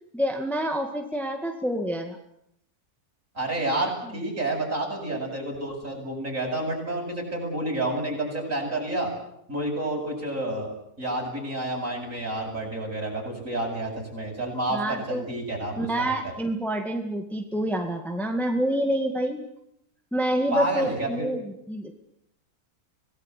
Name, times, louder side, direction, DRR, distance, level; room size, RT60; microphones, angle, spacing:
voice 1, 0.1-2.2 14.7-15.2 15.8-19.4 20.1-21.9, right 1 dB, ahead, 4 dB, 2.0 m, -27 dB
voice 2, 3.3-9.1 9.5-10.7 11.0-16.1 20.5-21.3, right 1 dB, 55° right, -1 dB, 8.4 m, -29 dB
26.5 x 19.0 x 8.5 m, 0.76 s
omnidirectional pair, 1.7 m